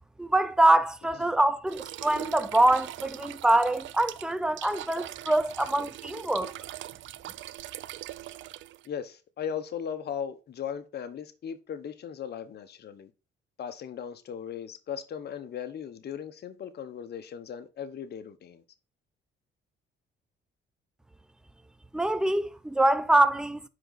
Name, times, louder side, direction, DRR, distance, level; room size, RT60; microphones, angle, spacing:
voice 1, 0.2-6.5 21.9-23.7, right 1 dB, 5° right, 0.7 m, -24 dB
sound 1, 1.7-8.9, right 14 dB, 70° right, 0.5 m, -41 dB
voice 2, 8.9-13.1 13.6-18.6, left 8 dB, 55° left, 0.9 m, -37 dB
7.7 x 5.1 x 3.9 m
cardioid pair, 90°, 20 cm